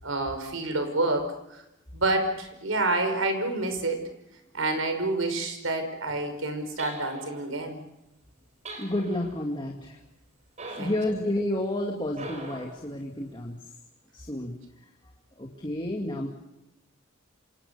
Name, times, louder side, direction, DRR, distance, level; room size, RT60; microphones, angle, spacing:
voice 1, 0.0-1.6 1.9-4.0 4.5-7.8 10.8-10.9, right 2 dB, 85° right, 7 dB, 5.4 m, -28 dB
sound 1, 6.8-7.5 8.7-9.4 10.6-11.2 12.1-12.8, right 2 dB, 35° right, 4.9 m, -41 dB
voice 2, 8.8-10.0 10.7-13.6 14.1-14.5 15.4-16.3, left 1 dB, 25° left, 0 dB, 2.4 m, -30 dB
28.0 x 27.0 x 7.0 m, 0.90 s
head